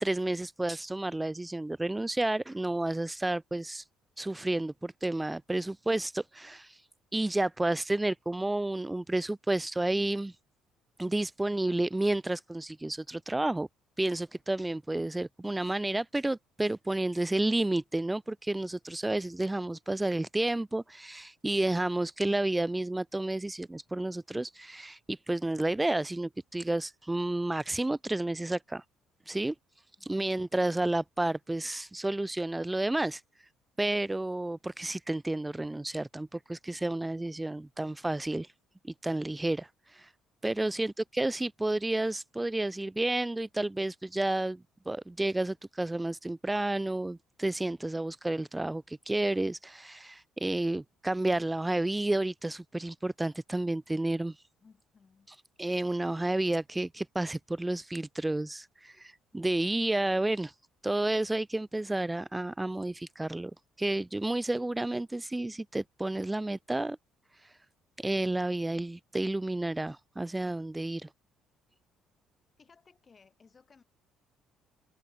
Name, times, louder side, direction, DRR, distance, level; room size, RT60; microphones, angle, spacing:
voice 1, 0.0-3.8 4.2-6.8 7.1-10.3 11.0-13.7 14.0-28.8 29.3-29.5 30.0-33.2 33.8-38.5 38.8-40.1 40.4-54.4 55.6-60.5 60.8-63.5 63.8-67.0 67.4-67.5 68.0-71.1, right 2 dB, 15° right, 0.5 m, -31 dB
voice 2, 54.6-55.3 72.6-73.8, left 5 dB, 35° left, 7.2 m, -61 dB
open air
hypercardioid pair, 60°, 0 cm